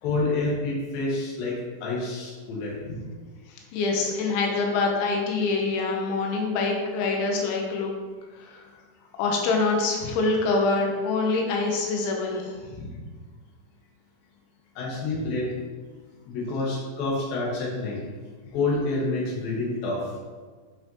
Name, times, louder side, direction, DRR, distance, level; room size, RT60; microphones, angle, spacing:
voice 1, 0.0-2.7 14.8-15.5 16.3-18.0 18.5-20.1, left 3 dB, 60° left, -5 dB, 3.1 m, -28 dB
voice 2, 3.7-7.9 8.4-8.6 9.2-12.9, left 3 dB, 90° left, 0 dB, 3.3 m, -25 dB
8.7 x 5.4 x 2.9 m, 1.4 s
omnidirectional pair, 5.2 m